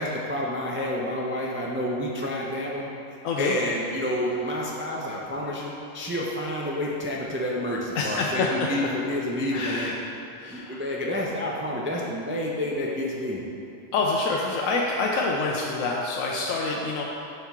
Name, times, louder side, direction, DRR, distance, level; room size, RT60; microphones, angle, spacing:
voice 1, 0.0-2.9 3.4-9.9 10.5-13.4, left 1 dB, 20° right, -3 dB, 0.3 m, -29 dB
voice 2, 3.2-3.5 7.9-8.9 9.5-9.9 10.3-10.8 13.9-17.0, left 3 dB, 90° left, -2 dB, 1.0 m, -27 dB
7.2 x 5.7 x 3.6 m, 2.9 s
omnidirectional pair, 1.3 m